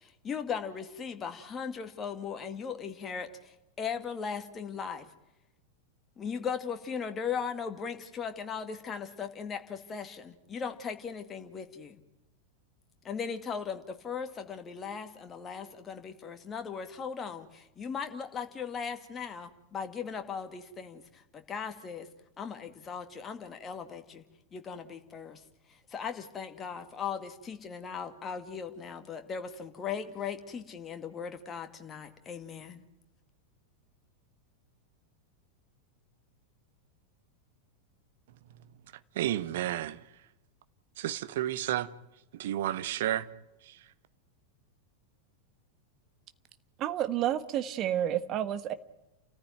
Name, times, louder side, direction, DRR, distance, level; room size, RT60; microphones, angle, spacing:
voice 1, 0.0-5.1 6.2-12.0 13.0-22.1 22.4-24.2 24.5-25.4 25.9-32.8, left 6 dB, 20° left, 2.2 m, -38 dB
voice 2, 39.2-40.0 41.0-41.9 42.4-43.3, right 12 dB, 55° right, 1.0 m, -31 dB
voice 3, 46.8-48.7, right 11 dB, 35° right, 1.4 m, -30 dB
29.5 x 14.5 x 9.2 m
figure-of-eight pair, 90°, 0 cm